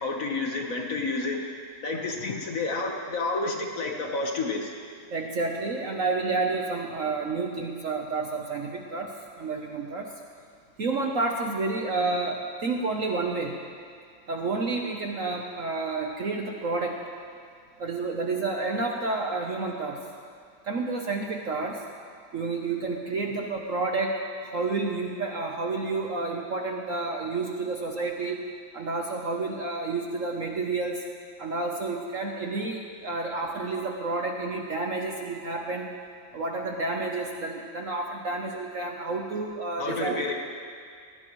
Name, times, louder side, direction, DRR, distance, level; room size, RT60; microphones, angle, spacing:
voice 1, 0.0-1.4 1.8-4.7 39.8-40.3, left 3 dB, 50° left, 1 dB, 1.5 m, -30 dB
voice 2, 5.1-10.1 10.8-13.6 14.3-17.0 17.8-20.0 20.6-21.8 22.3-28.4 28.7-31.0 31.4-35.9 36.3-40.2, right 3 dB, 50° right, 1 dB, 1.0 m, -30 dB
20.0 x 17.0 x 3.1 m, 2.2 s
omnidirectional pair, 2.1 m